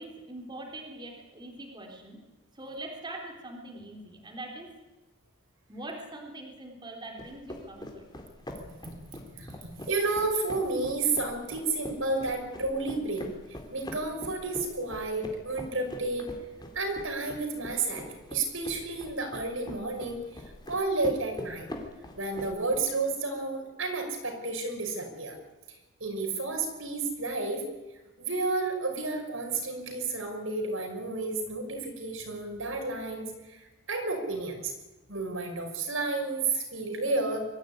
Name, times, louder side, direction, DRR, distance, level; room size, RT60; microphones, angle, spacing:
voice 1, 0.0-2.2 2.5-4.7 5.7-8.1, right 1 dB, 20° right, 1 dB, 3.6 m, -42 dB
sound 1, 7.2-22.9, left 1 dB, 20° left, 3.5 m, -44 dB
voice 2, 9.9-13.3 13.7-16.3 16.7-20.4 20.7-21.7 22.2-25.4 26.0-27.6 28.2-34.7 35.1-37.5, right 3 dB, 75° right, 3 dB, 5.9 m, -31 dB
23.0 x 15.0 x 9.6 m, 1.1 s
head